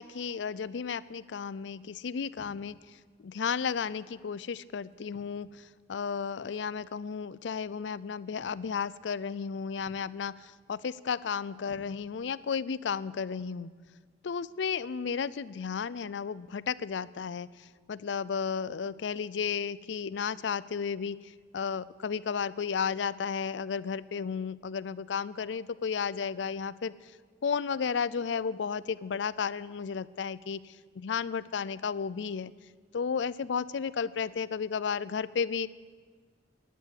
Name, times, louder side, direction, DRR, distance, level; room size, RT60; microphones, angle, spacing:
voice 1, 0.0-2.8 3.2-5.6 5.9-13.7 14.2-17.5 17.9-21.2 21.5-26.9 27.4-32.5 32.9-35.7, left 6 dB, 85° left, 19 dB, 0.4 m, -33 dB
sound 1, 2.4-2.8 3.7-4.1 5.1-5.6 6.7-6.9 8.4-8.9 9.8-10.3 11.7-12.4, left 1 dB, 70° left, 1.2 m, -57 dB
11.5 x 11.0 x 8.4 m, 1.5 s
head